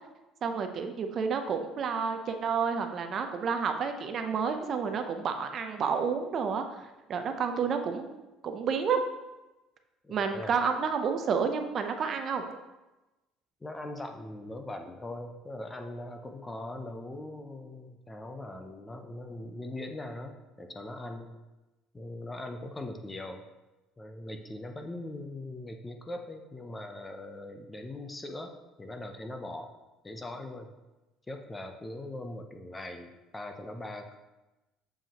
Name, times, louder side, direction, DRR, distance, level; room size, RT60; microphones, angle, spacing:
voice 1, 0.4-6.6 7.1-9.0 10.1-12.6, right 6 dB, 40° right, 6 dB, 0.5 m, -30 dB
voice 2, 10.0-10.6 13.6-21.4 21.9-23.5 24.0-29.7 30.0-30.7 31.3-34.2, left 1 dB, 15° left, 5 dB, 0.5 m, -41 dB
7.2 x 5.4 x 2.9 m, 1.1 s
cardioid pair, 140°, 0 cm